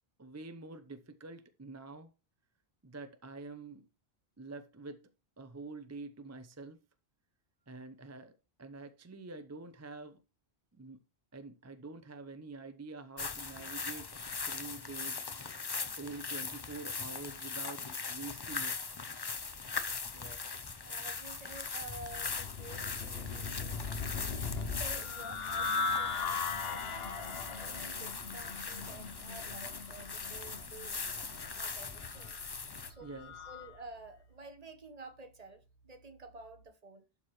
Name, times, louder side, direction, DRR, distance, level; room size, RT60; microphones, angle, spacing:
voice 1, 0.2-2.1 2.8-3.9 4.4-5.1 5.4-6.8 7.7-8.3 8.6-10.2 10.7-11.0 11.3-14.1 14.4-15.2 15.9-18.8 33.0-33.5, right 3 dB, 20° right, 0.5 m, -46 dB
sound 1, 13.2-32.9, left 4 dB, 30° left, 0.5 m, -40 dB
voice 2, 20.1-20.5 20.8-24.2 24.8-31.0 31.5-32.4 32.6-37.0, right 2 dB, 40° right, 1.1 m, -51 dB
sound 2, 21.9-33.7, left 4 dB, 70° left, 1.2 m, -39 dB
sound 3, 29.0-36.7, right 3 dB, 50° left, 2.4 m, -62 dB
12.0 x 4.4 x 3.1 m
omnidirectional pair, 1.1 m